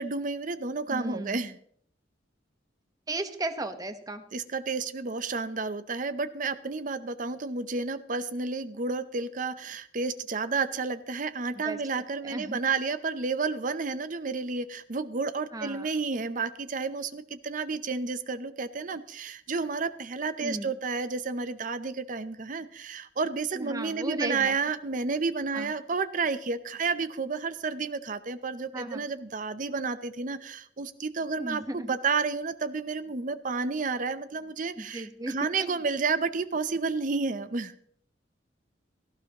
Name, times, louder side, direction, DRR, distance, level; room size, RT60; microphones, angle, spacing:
voice 1, 0.0-1.6 4.3-37.7, right 4 dB, 45° right, 13 dB, 0.6 m, -31 dB
voice 2, 0.9-1.4 3.1-4.2 11.5-11.8 12.2-12.6 15.5-15.9 20.4-20.7 23.5-24.5 25.5-25.7 28.7-29.0 31.4-31.9 34.8-35.8, right 2 dB, 20° right, 9 dB, 1.0 m, -35 dB
17.5 x 14.0 x 2.9 m, 0.63 s
head